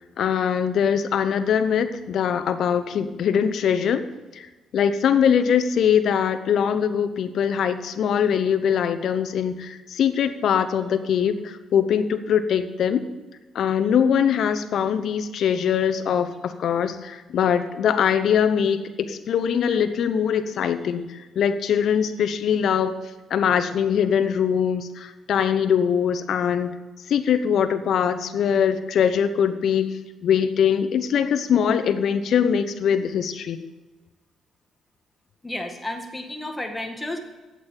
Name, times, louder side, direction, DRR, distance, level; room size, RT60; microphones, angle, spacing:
voice 1, 0.2-4.0 4.7-13.0 13.5-21.1 21.4-22.9 23.3-26.7 27.1-29.9 30.2-33.6, left 8 dB, 70° left, 9 dB, 0.9 m, -22 dB
voice 2, 35.4-37.2, left 1 dB, 10° left, 4 dB, 1.8 m, -32 dB
8.5 x 8.4 x 8.9 m, 1.2 s
cardioid pair, 90°, 0 cm